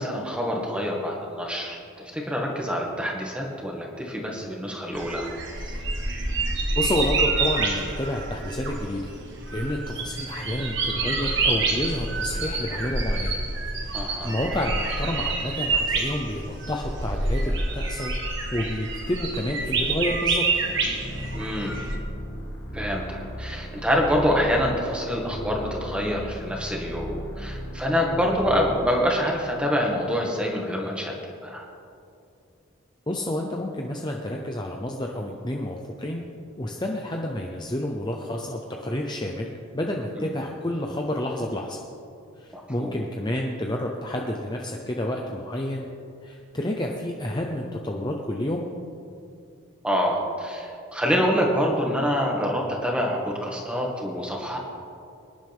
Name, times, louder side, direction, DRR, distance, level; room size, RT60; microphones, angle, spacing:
voice 1, 0.0-5.3 13.9-14.4 21.3-21.8 22.7-31.1 31.4-31.6 40.2-40.3 42.5-42.9 49.8-54.6, equal, 5° right, -1 dB, 1.9 m, -26 dB
sound 1, 5.0-22.0, right 3 dB, 55° right, 1.9 m, -27 dB
voice 2, 6.8-9.1 9.5-13.4 13.9-20.5 33.1-36.2 36.6-41.8 42.4-45.9 46.2-48.7, left 1 dB, 20° left, 0 dB, 0.8 m, -29 dB
sound 2, 20.6-28.8, equal, 55° left, 2.4 m, -37 dB
24.0 x 11.0 x 3.6 m, 2.5 s
head